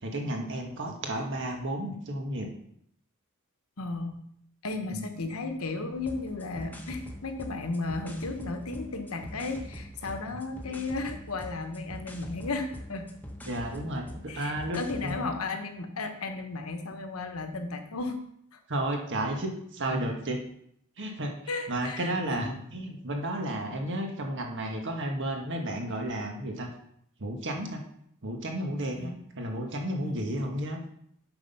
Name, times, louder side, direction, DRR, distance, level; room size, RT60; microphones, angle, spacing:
voice 1, 0.0-2.5 4.9-5.1 10.7-10.8 13.4-14.1 14.3-15.1 18.7-20.4 21.0-21.3 21.7-26.7 27.2-27.8 28.2-30.8, right 1 dB, 60° right, 2 dB, 1.5 m, -32 dB
voice 2, 3.8-4.2 4.6-13.1 14.3-18.2 18.5-18.6 21.5-22.5 29.0-29.2 30.0-30.2, left 3 dB, 75° left, 6 dB, 1.1 m, -34 dB
sound 1, 6.0-15.3, equal, 10° left, 1.0 m, -43 dB
7.8 x 6.1 x 5.5 m, 0.71 s
head